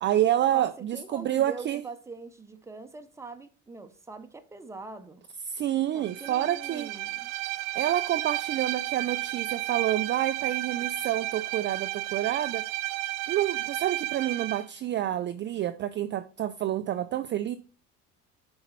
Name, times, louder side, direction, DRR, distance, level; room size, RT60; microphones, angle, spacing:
voice 1, 0.0-1.8 5.5-6.9 7.7-12.6 13.3-17.6, right 12 dB, 35° right, 0.4 m, -28 dB
voice 2, 0.5-5.3 5.9-7.3, right 4 dB, 10° right, 0.7 m, -43 dB
Bowed string instrument, 6.0-14.7, right 18 dB, 90° right, 0.6 m, -33 dB
5.9 x 4.3 x 5.7 m
cardioid pair, 135°, 33 cm